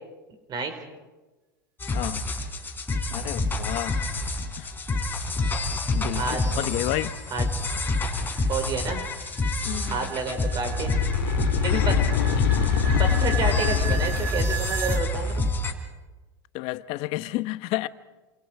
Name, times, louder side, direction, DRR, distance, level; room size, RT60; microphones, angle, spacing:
sound 1, 1.8-15.7, left 2 dB, 15° left, 4.3 m, -27 dB
voice 1, 1.9-2.2 3.1-4.0 4.4-4.7 5.9-7.2 9.6-10.2 11.7-11.9 16.5-17.9, left 18 dB, 55° left, 1.1 m, -31 dB
voice 2, 6.2-6.7 7.3-7.4 8.5-9.0 9.9-10.9 11.6-12.0 13.0-15.5, right 4 dB, 40° right, 5.2 m, -30 dB
sound 2, 7.9-15.0, right 10 dB, 75° right, 1.7 m, -37 dB
sound 3, 10.6-14.5, left 12 dB, 75° left, 2.0 m, -25 dB
29.5 x 27.5 x 4.8 m
hypercardioid pair, 105°, 11 cm